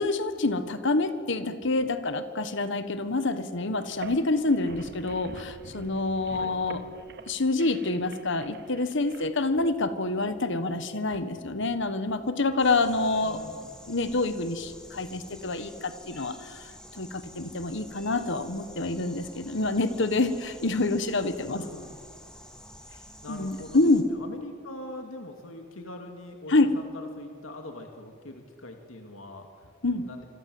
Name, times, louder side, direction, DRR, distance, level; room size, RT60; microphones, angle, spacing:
voice 1, 0.0-6.8 7.3-13.4 13.9-16.7 17.0-21.6 23.3-24.1 26.5-26.7 29.8-30.0, left 2 dB, 65° left, 11 dB, 1.5 m, -27 dB
sound 1, 3.8-9.3, right 4 dB, 55° right, 1.6 m, -46 dB
sound 2, 12.6-24.0, equal, 5° left, 3.1 m, -49 dB
voice 2, 13.2-13.7 21.5-22.0 23.2-30.3, left 2 dB, 80° left, 4 dB, 2.4 m, -43 dB
27.0 x 25.5 x 7.9 m, 2.1 s
head